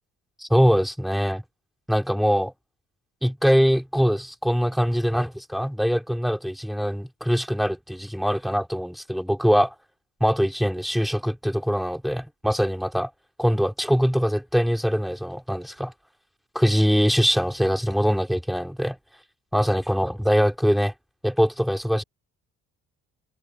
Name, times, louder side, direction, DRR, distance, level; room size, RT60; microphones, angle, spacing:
voice 1, 0.4-1.4 1.9-2.5 3.2-9.7 10.2-13.1 13.4-15.9 16.6-19.0 19.5-20.9 21.2-22.0, equal, ahead, 3.6 m, -22 dB
cardioid pair, 90°, 30 cm